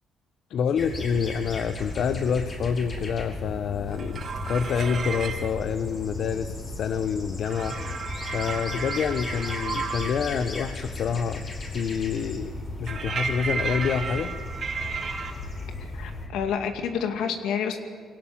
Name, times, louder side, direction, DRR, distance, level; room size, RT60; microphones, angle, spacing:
voice 1, 0.5-8.0 8.3-11.4 11.7-12.5 12.8-14.3, left 7 dB, 65° left, 11 dB, 0.9 m, -27 dB
sound 1, 0.8-16.3, left 2 dB, 40° left, 5.7 m, -36 dB
sound 2, 3.9-5.5 7.4-10.2 12.9-15.3, right 5 dB, 50° right, 3.6 m, -33 dB
voice 2, 15.9-17.8, left 7 dB, 85° left, 6 dB, 2.2 m, -28 dB
22.5 x 17.5 x 8.6 m, 2.1 s
cardioid pair, 90°, 0 cm